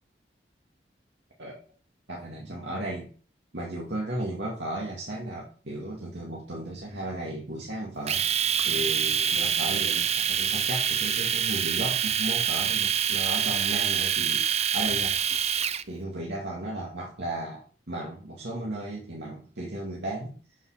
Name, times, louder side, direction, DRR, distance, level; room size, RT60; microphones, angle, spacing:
voice 1, 2.1-3.1 3.5-8.2 8.6-15.4 15.9-20.4, right 1 dB, 75° right, -3 dB, 2.3 m, -35 dB
sound 1, 6.2-13.3, right 1 dB, 25° left, 3.4 m, -56 dB
Domestic sounds home sounds, 8.1-15.8, right 8 dB, 40° right, 0.6 m, -26 dB
13.0 x 5.6 x 5.8 m, 0.41 s
head